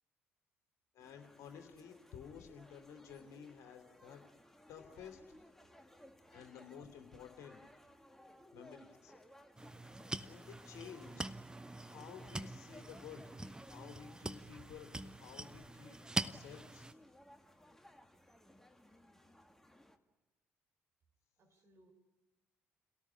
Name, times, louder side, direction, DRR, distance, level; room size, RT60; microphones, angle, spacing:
voice 1, 0.9-4.2 4.7-5.3 6.3-7.6 8.5-9.1 10.2-11.3 11.9-13.2 13.7-16.9, left 8 dB, 55° left, 5 dB, 2.9 m, -53 dB
sound 1, 1.0-20.0, left 1 dB, 5° left, 2.1 m, -61 dB
voice 2, 5.7-6.5 14.6-14.7 21.4-21.9, right 3 dB, 45° right, 4 dB, 5.1 m, -67 dB
sound 2, 9.6-16.9, right 2 dB, 10° right, 0.9 m, -44 dB
28.5 x 18.0 x 9.9 m, 1.2 s
figure-of-eight pair, 45°, 6 cm